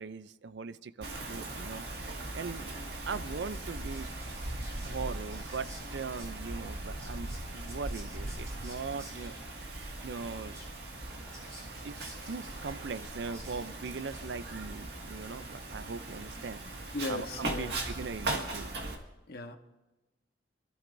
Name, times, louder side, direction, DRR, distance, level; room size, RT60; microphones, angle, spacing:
voice 1, 0.0-1.9 2.3-2.7 3.1-4.1 4.8-9.4 10.0-10.6 11.8-16.6 17.1-18.7, right 4 dB, 80° right, 15 dB, 0.5 m, -40 dB
Wind, 1.0-19.0, right 2 dB, 65° right, 2.0 m, -39 dB
Whispering, 3.0-14.7, equal, 20° right, 3.3 m, -54 dB
voice 2, 16.9-17.8 19.3-19.6, left 2 dB, 60° left, 5 dB, 1.2 m, -37 dB
26.5 x 13.0 x 2.6 m, 1.1 s
head